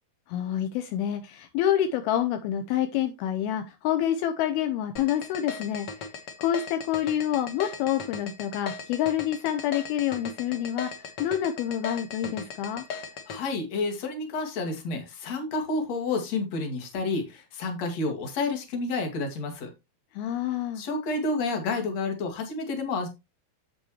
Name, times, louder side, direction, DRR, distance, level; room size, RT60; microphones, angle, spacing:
voice 1, 0.3-5.9 6.4-12.8 20.1-20.8, left 11 dB, 80° left, 7 dB, 2.5 m, -27 dB
sound 1, 5.0-13.4, left 5 dB, 65° left, 1.5 m, -37 dB
voice 2, 13.3-19.7 20.8-23.1, left 3 dB, 45° left, 4 dB, 2.8 m, -30 dB
8.9 x 8.0 x 3.0 m, 0.23 s
omnidirectional pair, 4.7 m